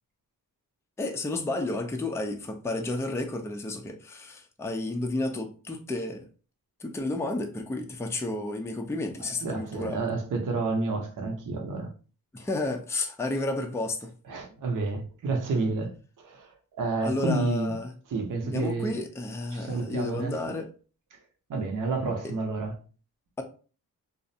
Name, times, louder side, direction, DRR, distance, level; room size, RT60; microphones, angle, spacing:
voice 1, 1.0-6.3 6.8-10.0 12.3-14.1 17.0-17.9 18.5-20.7, left 2 dB, 10° left, 0.4 m, -31 dB
voice 2, 9.2-11.9 12.4-12.5 14.3-17.8 18.1-19.0 19.5-20.4 21.1-21.2 21.5-22.7, right 3 dB, 55° right, 0.7 m, -30 dB
2.4 x 2.0 x 2.6 m
cardioid pair, 55°, 38 cm